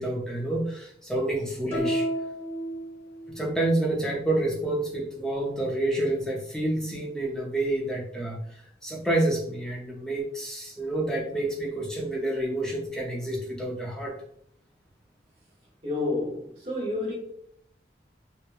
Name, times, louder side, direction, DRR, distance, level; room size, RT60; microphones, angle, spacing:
voice 1, 0.0-2.1 3.3-14.1, right 1 dB, 5° left, 0.4 m, -28 dB
sound 1, 1.7-3.5, equal, 55° right, 0.7 m, -31 dB
voice 2, 15.8-17.1, left 2 dB, 35° right, 1.0 m, -29 dB
2.9 x 2.1 x 2.2 m
head